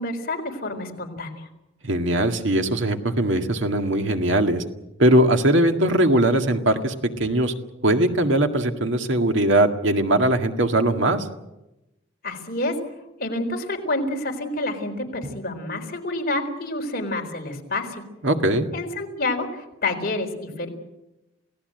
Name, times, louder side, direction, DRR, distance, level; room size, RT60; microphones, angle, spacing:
voice 1, 0.0-1.5 12.2-12.8 13.2-18.0 18.7-20.7, left 2 dB, 45° left, 3 dB, 4.2 m, -28 dB
voice 2, 1.8-4.6 5.0-7.5 7.8-11.3 18.2-18.7, right 1 dB, 65° right, 5 dB, 1.9 m, -20 dB
28.5 x 17.5 x 7.9 m, 0.96 s
head